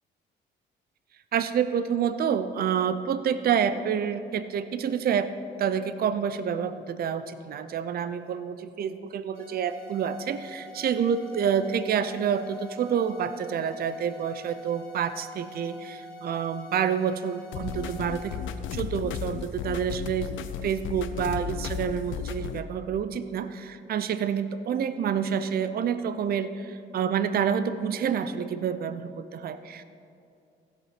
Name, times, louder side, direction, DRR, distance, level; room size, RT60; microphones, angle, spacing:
voice 1, 1.3-5.3 5.6-18.4 18.7-29.8, right 7 dB, 50° right, 12 dB, 0.5 m, -28 dB
sound 1, 9.3-18.4, left 1 dB, 50° left, 2.0 m, -45 dB
sound 2, 17.5-22.6, left 8 dB, 75° left, 0.6 m, -34 dB
15.5 x 5.5 x 5.9 m, 2.5 s
cardioid pair, 90°, 20 cm